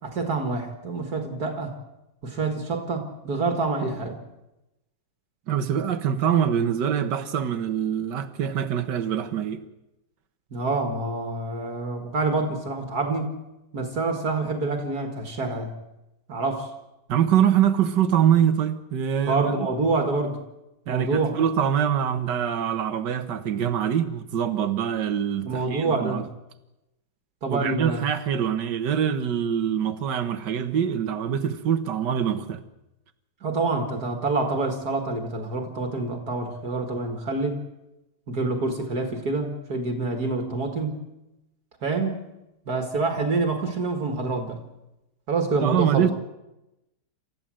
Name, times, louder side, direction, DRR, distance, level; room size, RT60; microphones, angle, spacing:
voice 1, 0.0-1.7 2.2-4.2 10.5-13.4 13.7-15.7 16.3-16.7 19.3-20.4 20.9-21.3 25.4-26.2 27.4-28.1 33.4-37.6 38.3-41.0 41.8-42.3 42.7-44.6 45.3-46.1, right 3 dB, 60° right, 2.5 m, -27 dB
voice 2, 5.5-9.6 17.1-19.6 20.9-26.2 27.5-32.6 45.6-46.1, right 9 dB, 75° right, 1.9 m, -24 dB
28.5 x 14.0 x 7.7 m
omnidirectional pair, 1.9 m